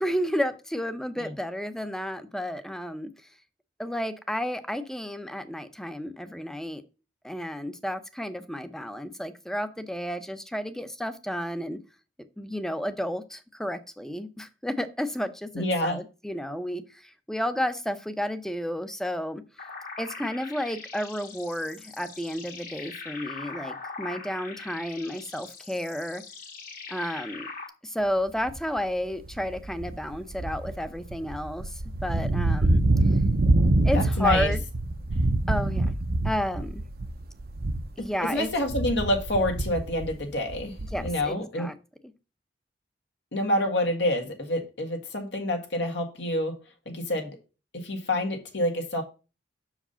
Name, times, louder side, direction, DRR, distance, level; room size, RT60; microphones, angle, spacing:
voice 1, 0.0-3.1 3.8-6.8 7.2-11.8 12.4-19.4 20.0-26.2 26.9-27.5 27.8-32.8 33.8-34.6 35.5-36.0 36.2-36.8 38.0-38.5 40.9-41.7, equal, 5° left, 0.6 m, -31 dB
voice 2, 15.5-16.0 33.9-34.5 38.0-41.7 43.3-46.6 46.9-47.4 47.7-49.0, left 1 dB, 75° left, 1.7 m, -28 dB
sound 1, 19.6-27.7, left 4 dB, 50° left, 1.7 m, -41 dB
sound 2, 28.5-28.8 29.2-38.1 38.4-41.3, right 2 dB, 55° right, 0.7 m, -26 dB
6.6 x 4.9 x 5.6 m
head